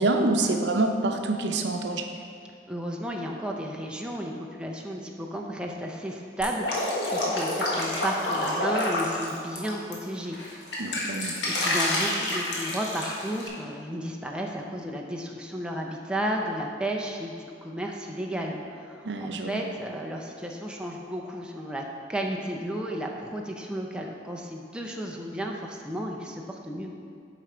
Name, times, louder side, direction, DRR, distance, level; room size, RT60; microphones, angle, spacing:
voice 1, 0.0-2.1 10.8-11.3 19.0-19.5, right 2 dB, 85° right, 4 dB, 0.7 m, -26 dB
voice 2, 2.7-10.6 10.9-11.0 11.4-26.9, equal, 5° right, 0 dB, 0.5 m, -33 dB
Drip, 6.4-9.9 10.3-13.5, left 1 dB, 75° left, 1.4 m, -28 dB
8.2 x 4.9 x 4.4 m, 2.3 s
head